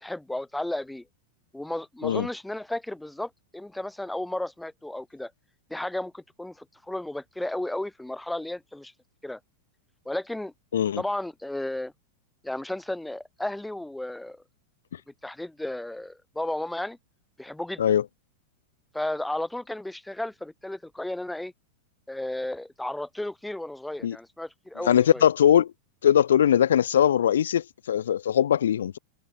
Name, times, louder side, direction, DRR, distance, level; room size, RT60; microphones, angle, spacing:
voice 1, 0.0-1.0 1.5-5.3 5.7-8.9 9.2-9.4 10.1-10.5 11.0-11.9 12.4-14.4 15.2-17.0 17.4-17.8 18.9-21.5 22.1-25.2, left 1 dB, 5° left, 1.9 m, -33 dB
voice 2, 24.9-25.7 26.0-29.0, left 9 dB, 65° left, 0.4 m, -21 dB
figure-of-eight pair, 90°, 0 cm